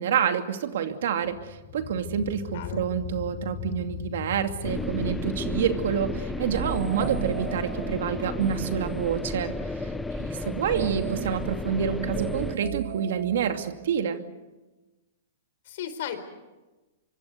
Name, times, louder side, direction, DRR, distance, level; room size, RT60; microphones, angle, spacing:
voice 1, 0.0-9.5 9.8-9.9 10.2-14.2, right 8 dB, 70° right, 7 dB, 2.5 m, -28 dB
sound 1, 1.2-12.8, left 13 dB, 40° left, 1.0 m, -42 dB
voice 2, 2.5-2.8 10.4-11.0 15.6-16.3, left 9 dB, 60° left, 10 dB, 4.3 m, -37 dB
sound 2, 4.6-12.6, left 2 dB, 5° left, 1.1 m, -33 dB
sound 3, 6.5-9.5 10.7-14.0, right 13 dB, 50° right, 1.5 m, -37 dB
25.5 x 24.0 x 6.9 m, 1.1 s
hypercardioid pair, 140°, 0 cm